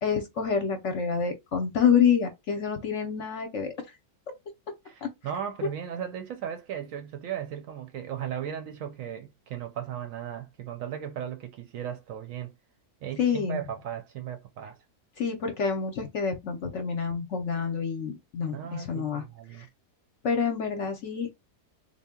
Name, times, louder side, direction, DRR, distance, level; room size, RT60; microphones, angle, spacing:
voice 1, 0.0-3.7 5.0-5.1 13.2-13.6 15.2-19.2 19.5-19.7 20.2-21.4, left 6 dB, 60° left, 0.8 m, -27 dB
voice 2, 4.9-12.5 13.0-14.8 18.5-19.7, right 9 dB, 70° right, 0.8 m, -36 dB
3.6 x 2.1 x 3.6 m
omnidirectional pair, 1.7 m